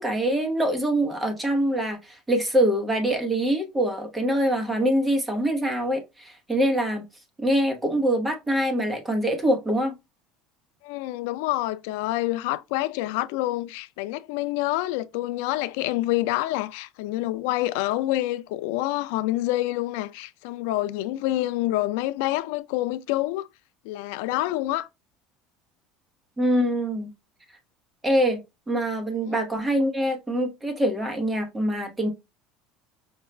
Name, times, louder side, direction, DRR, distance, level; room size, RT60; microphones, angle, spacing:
voice 1, 0.0-7.0 7.4-9.9 26.4-27.1 28.0-28.4 28.7-32.1, right 1 dB, 10° right, 1.0 m, -24 dB
voice 2, 10.8-23.5 23.9-24.9 29.2-29.4, left 16 dB, 80° left, 0.3 m, -27 dB
5.3 x 2.3 x 3.1 m
cardioid pair, 165°, 0 cm